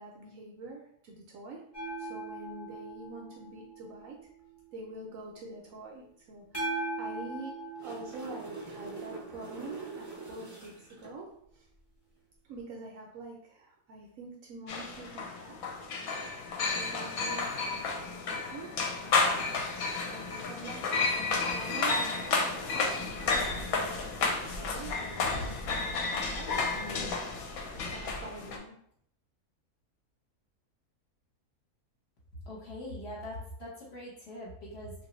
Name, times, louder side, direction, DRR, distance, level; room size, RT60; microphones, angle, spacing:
voice 1, 0.0-1.6 2.0-4.2 4.7-7.5 7.8-11.3 11.5-11.7 12.4-15.6 15.9-27.2 27.7-28.7, right 2 dB, 70° right, 0 dB, 0.9 m, -46 dB
sound 1, 1.7-4.6 6.5-9.8 12.6-12.7, right 2 dB, 20° left, 0.8 m, -40 dB
sound 2, 7.5-11.1 15.0-15.1, right 3 dB, 30° right, 0.3 m, -44 dB
sound 3, 14.7-28.6, left 4 dB, 70° left, 1.0 m, -31 dB
voice 2, 32.5-34.9, left 1 dB, 50° left, -4 dB, 1.0 m, -42 dB
2.8 x 2.5 x 3.0 m, 0.68 s
omnidirectional pair, 1.7 m